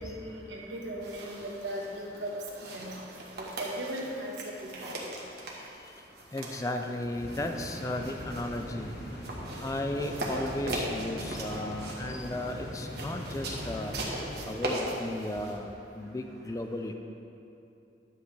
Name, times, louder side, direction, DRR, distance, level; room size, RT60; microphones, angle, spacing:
voice 1, 0.0-2.9 3.4-4.3 4.6-4.9, right 1 dB, 80° right, -2 dB, 1.2 m, -38 dB
sound 1, 1.0-15.6, right 1 dB, 60° right, 1.3 m, -40 dB
voice 2, 6.3-8.9 9.6-13.9 14.5-15.7 15.9-16.9, left 1 dB, 20° left, 5 dB, 0.4 m, -35 dB
sound 2, 7.2-14.5, left 1 dB, 70° left, 1.3 m, -41 dB
10.5 x 7.6 x 3.3 m, 2.8 s
head